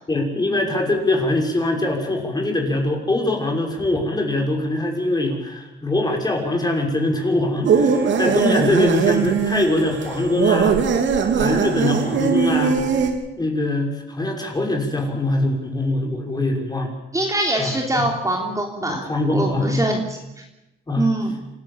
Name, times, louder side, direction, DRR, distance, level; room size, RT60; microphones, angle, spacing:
voice 1, 0.1-10.8 11.4-12.9 13.4-16.9 17.5-18.0 18.9-19.9 20.9-21.1, left 2 dB, 20° left, 1 dB, 6.0 m, -23 dB
sound 1, 7.6-13.1, right 6 dB, 70° right, 3.0 m, -20 dB
voice 2, 17.1-20.2 20.9-21.3, right 1 dB, 15° right, 1 dB, 3.6 m, -23 dB
27.5 x 13.5 x 9.0 m, 0.95 s
cardioid pair, 90°, 20 cm